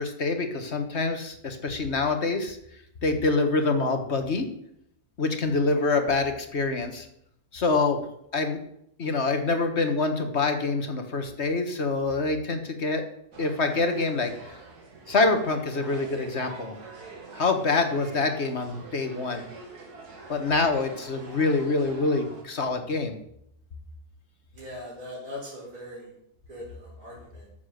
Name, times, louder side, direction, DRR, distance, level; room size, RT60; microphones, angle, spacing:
voice 1, 0.0-2.6 3.0-4.5 5.2-7.1 7.5-8.0 8.3-8.6 9.0-13.0 13.4-14.5 15.1-16.8 17.4-19.5 20.3-23.2, left 3 dB, 45° left, 6 dB, 1.7 m, -26 dB
sound 1, 13.3-22.4, right 3 dB, 90° right, 2.6 m, -45 dB
voice 2, 24.5-26.1 26.5-27.4, left 1 dB, 75° right, -7 dB, 4.3 m, -40 dB
13.5 x 7.1 x 6.6 m, 0.75 s
omnidirectional pair, 1.6 m